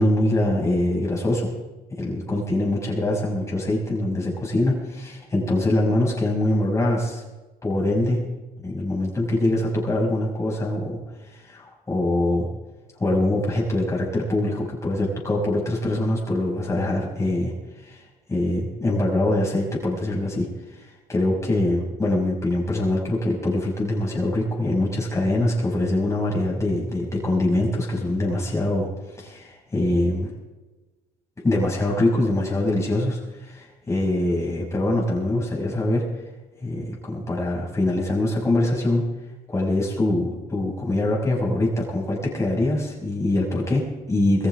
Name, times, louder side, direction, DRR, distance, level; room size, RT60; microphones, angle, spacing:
voice 1, 0.0-1.5 2.0-7.2 7.6-8.2 8.6-11.0 11.3-12.5 13.0-18.0 18.3-28.9 29.1-30.3 31.4-36.0 36.6-39.0 39.5-44.5, left 1 dB, 15° left, -3 dB, 6.1 m, -23 dB
22.0 x 15.0 x 3.6 m, 1.2 s
cardioid pair, 110°, 17 cm